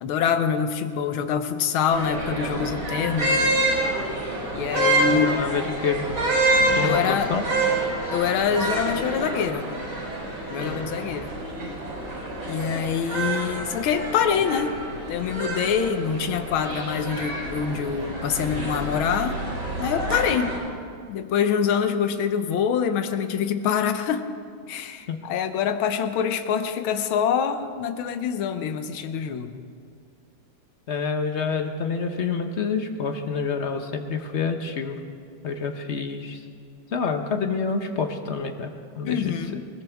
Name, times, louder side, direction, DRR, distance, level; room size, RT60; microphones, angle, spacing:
voice 1, 0.0-3.5 4.5-5.5 6.8-7.3 8.1-9.7 10.5-11.3 12.5-14.8 15.1-19.5 19.8-20.5 21.1-24.3 24.7-29.6 39.1-39.6, left 7 dB, 85° left, 8 dB, 1.6 m, -25 dB
sound 1, 1.9-20.6, right 2 dB, 85° right, 5.6 m, -27 dB
voice 2, 5.1-6.1 6.7-7.4 10.6-11.0 25.1-25.2 30.9-35.0 35.4-36.4 36.9-38.7 39.0-39.6, left 5 dB, 50° left, 6 dB, 0.9 m, -28 dB
20.5 x 20.0 x 3.5 m, 2.3 s
omnidirectional pair, 2.2 m